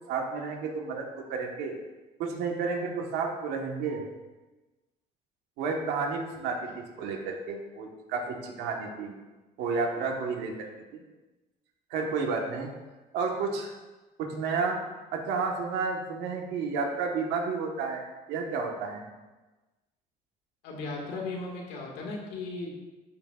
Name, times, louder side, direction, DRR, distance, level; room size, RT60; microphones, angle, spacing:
voice 1, 0.1-1.8 2.2-4.0 5.6-9.1 9.6-11.0 11.9-12.7 13.1-13.7 14.2-14.8 15.1-19.0, right 4 dB, 90° right, 2 dB, 1.3 m, -31 dB
voice 2, 20.6-22.8, left 3 dB, 90° left, -1 dB, 1.9 m, -36 dB
12.0 x 5.9 x 2.4 m, 1.2 s
cardioid pair, 110°, 17 cm